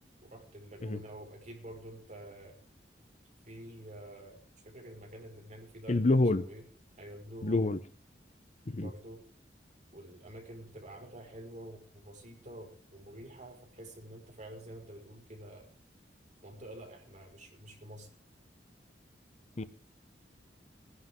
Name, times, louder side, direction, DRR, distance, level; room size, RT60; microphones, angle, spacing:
voice 1, 0.2-2.6 3.5-6.6 7.0-7.7 8.8-9.2 9.9-15.7 16.4-18.1, right 1 dB, 45° right, 1 dB, 5.3 m, -48 dB
voice 2, 5.9-6.4 7.4-7.8 8.7-8.9 19.6-19.7, left 2 dB, 40° left, 14 dB, 0.7 m, -27 dB
20.5 x 11.0 x 3.7 m, 0.41 s
head